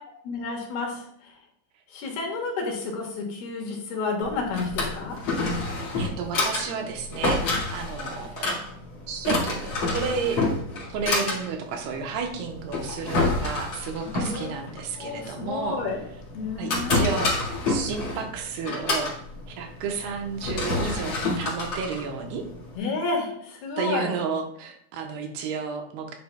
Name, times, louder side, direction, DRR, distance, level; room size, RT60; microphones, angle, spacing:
voice 1, 0.2-1.0 1.9-5.2 14.2-14.7 14.9-16.0 16.3-17.1 22.8-24.1, left 4 dB, 80° left, 0 dB, 3.4 m, -30 dB
Drawer open or close, 4.2-22.8, left 2 dB, 40° left, 2.0 m, -29 dB
voice 2, 6.0-8.6 9.1-10.4 10.9-15.8 16.6-19.1 19.6-22.4 23.8-26.1, right 5 dB, 85° right, 3 dB, 2.9 m, -32 dB
9.4 x 6.9 x 2.3 m, 0.68 s
omnidirectional pair, 4.5 m